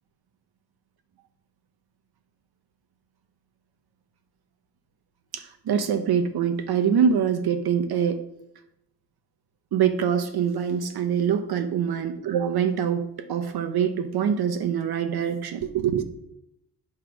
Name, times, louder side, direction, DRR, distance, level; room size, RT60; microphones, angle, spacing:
voice 1, 5.3-8.2 9.7-16.0, right 7 dB, 65° right, 0.8 m, -24 dB
9.3 x 3.3 x 6.0 m
cardioid pair, 130°, 41 cm